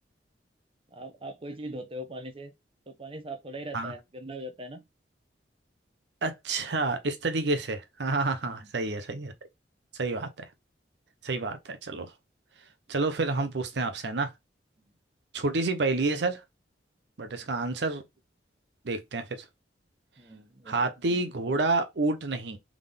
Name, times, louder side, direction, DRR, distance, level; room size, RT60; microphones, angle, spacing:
voice 1, 0.9-2.5 2.9-4.8 8.5-8.7 17.4-17.6 20.2-20.9, right 1 dB, 30° right, 0.9 m, -41 dB
voice 2, 6.2-9.3 10.0-10.3 11.2-12.1 12.9-14.3 15.3-16.4 17.2-18.0 18.8-19.4 20.7-22.6, right 3 dB, 70° right, 0.7 m, -29 dB
3.7 x 3.6 x 3.4 m
head